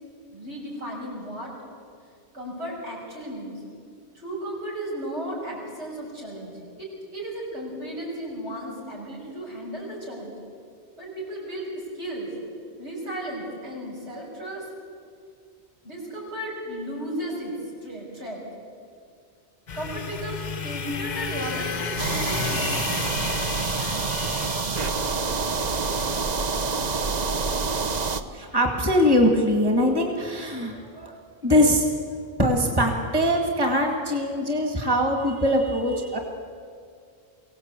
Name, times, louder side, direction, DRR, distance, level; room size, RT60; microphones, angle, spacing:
voice 1, 0.3-1.5 2.3-3.6 4.1-10.4 11.0-12.3 12.8-14.7 15.8-17.5 17.8-18.4 19.7-22.8, right 1 dB, 80° right, -4 dB, 6.7 m, -34 dB
sound 1, 19.7-26.2, left 6 dB, 45° left, 0.8 m, -33 dB
sound 2, 22.0-28.2, right 4 dB, 40° right, 0.9 m, -27 dB
voice 2, 28.3-31.2 31.4-31.9 32.4-36.2, equal, 20° right, 3 dB, 2.1 m, -22 dB
23.5 x 17.0 x 8.3 m, 2.2 s
omnidirectional pair, 1.1 m